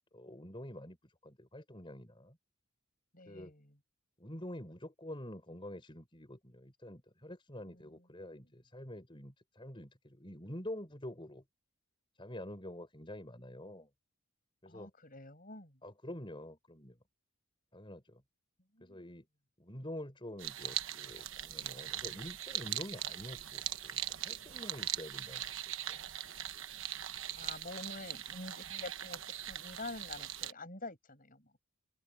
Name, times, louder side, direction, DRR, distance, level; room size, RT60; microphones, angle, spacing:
voice 1, 0.1-2.4 3.3-3.5 4.2-11.4 12.2-13.9 14.6-14.9 15.8-17.0 17.7-18.2 18.8-19.3 19.6-26.0, left 1 dB, 20° left, 5.4 m, -47 dB
voice 2, 3.1-3.7 7.7-8.0 14.7-15.8 18.7-19.0 27.3-29.2 29.5-31.5, left 2 dB, 40° left, 7.3 m, -47 dB
sound 1, 20.4-30.5, right 11 dB, 60° right, 1.2 m, -41 dB
open air
head